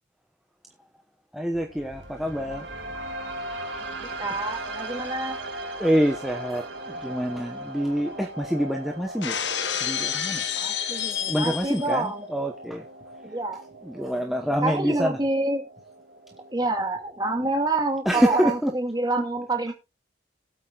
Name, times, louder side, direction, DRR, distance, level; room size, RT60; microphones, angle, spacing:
voice 1, 1.3-2.7 5.8-9.4 9.8-10.4 11.3-12.8 13.8-15.2 18.0-18.8, equal, ahead, 0.9 m, -26 dB
sound 1, 1.5-17.5, right 1 dB, 80° right, 2.6 m, -39 dB
voice 2, 3.8-5.4 10.6-12.3 13.2-13.6 13.9-14.4 14.6-15.7 16.5-19.7, right 2 dB, 20° right, 2.1 m, -27 dB
Shatter, 9.2-12.0, left 9 dB, 75° left, 1.2 m, -29 dB
19.5 x 8.4 x 2.3 m
head